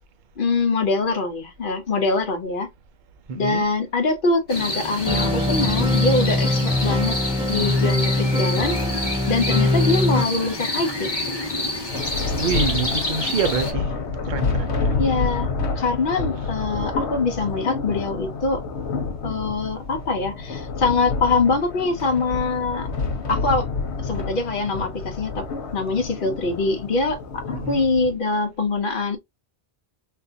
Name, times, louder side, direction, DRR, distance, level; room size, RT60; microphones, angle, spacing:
voice 1, 0.4-2.7 3.3-7.2 7.5-8.8 9.3-11.1 15.0-15.5 15.8-18.6 19.2-22.9 23.3-23.7 24.0-25.5 25.7-29.2, left 3 dB, 55° left, 0.8 m, -23 dB
voice 2, 3.3-3.6 12.4-13.9 14.2-14.9 27.5-27.8, right 5 dB, 55° right, 0.7 m, -26 dB
sound 1, 4.5-13.7, left 1 dB, 25° left, 0.8 m, -28 dB
sound 2, 5.1-10.2, left 1 dB, 5° right, 0.4 m, -22 dB
Thunder, 11.9-28.1, left 4 dB, 85° left, 1.1 m, -28 dB
3.6 x 2.5 x 2.5 m
omnidirectional pair, 1.1 m